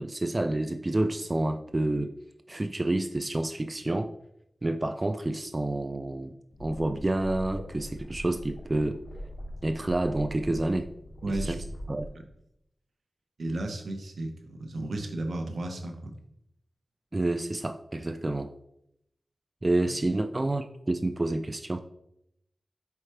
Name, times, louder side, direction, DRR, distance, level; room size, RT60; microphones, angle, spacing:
voice 1, 0.0-2.1 2.5-4.1 4.6-6.3 6.6-9.0 9.6-10.9 11.3-11.6 11.9-12.1 17.1-18.5 19.6-21.8, right 2 dB, 30° right, 8 dB, 0.3 m, -29 dB
sound 1, 6.5-12.1, equal, 50° left, 1.1 m, -41 dB
voice 2, 11.2-11.6 12.1-12.2 13.4-16.1, right 2 dB, 75° right, 4 dB, 0.9 m, -34 dB
4.8 x 4.6 x 4.3 m, 0.78 s
wide cardioid pair, 65°, 0 cm